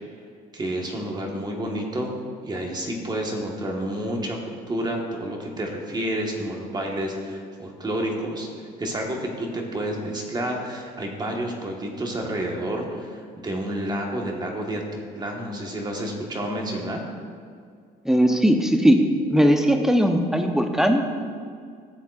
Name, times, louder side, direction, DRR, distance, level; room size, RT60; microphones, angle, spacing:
voice 1, 0.5-2.1 2.4-17.0, right 1 dB, 25° right, 0 dB, 1.4 m, -30 dB
voice 2, 18.0-19.0 19.3-21.0, equal, 5° right, 5 dB, 0.7 m, -19 dB
13.0 x 7.3 x 2.4 m, 2.2 s
cardioid pair, 110°, 17 cm